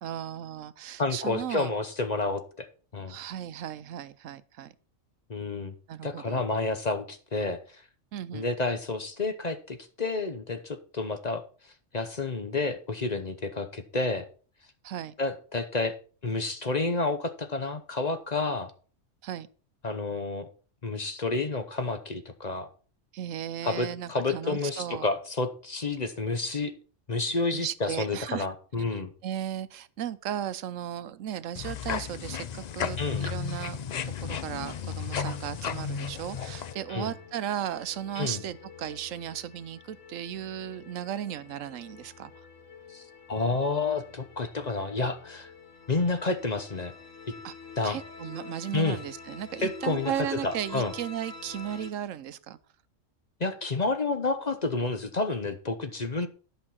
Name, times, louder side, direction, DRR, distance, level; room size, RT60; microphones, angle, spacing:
voice 1, 0.0-1.7 3.1-4.7 5.9-6.4 8.1-8.4 14.8-15.1 19.2-19.5 23.1-25.1 27.5-28.5 29.2-33.8 34.0-42.3 47.4-47.5 47.8-52.6, right 10 dB, 85° right, 15 dB, 1.0 m, -36 dB
voice 2, 1.0-3.2 5.3-5.7 6.0-7.8 8.3-11.4 11.9-14.3 15.2-15.9 16.2-18.7 19.8-20.5 20.8-22.7 23.6-26.7 27.1-29.1 33.0-33.3 36.9-37.1 38.2-38.4 42.9-43.0 43.3-45.5 45.9-46.9 47.8-48.0 48.7-49.0 49.6-50.1 50.4-50.9 53.4-56.3, left 3 dB, 35° left, 9 dB, 0.9 m, -30 dB
sound 1, 31.6-36.7, left 7 dB, 55° left, 0.5 m, -34 dB
sound 2, 34.5-51.9, left 5 dB, 80° left, 1.9 m, -48 dB
11.0 x 5.6 x 5.8 m, 0.40 s
omnidirectional pair, 1.3 m